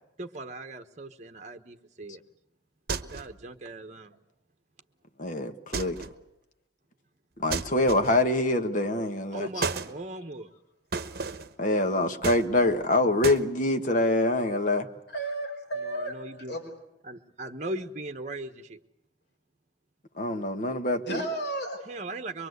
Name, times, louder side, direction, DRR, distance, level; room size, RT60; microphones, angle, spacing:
voice 1, 0.2-2.2 3.1-4.2 9.3-10.5 15.8-16.6 17.0-18.8 21.9-22.5, right 2 dB, 40° right, 7 dB, 1.2 m, -39 dB
sound 1, 2.9-3.4 5.7-6.2 7.5-8.3 9.6-9.9 10.9-11.5 12.2-12.8 13.2-13.5, right 4 dB, 60° right, 1.1 m, -33 dB
voice 2, 5.2-6.0 7.4-9.5 11.6-14.9 20.2-21.2, left 2 dB, 45° left, 6 dB, 1.5 m, -25 dB
voice 3, 15.1-16.6 21.0-21.8, right 1 dB, 70° left, 3 dB, 4.5 m, -33 dB
24.0 x 23.5 x 8.1 m, 0.82 s
head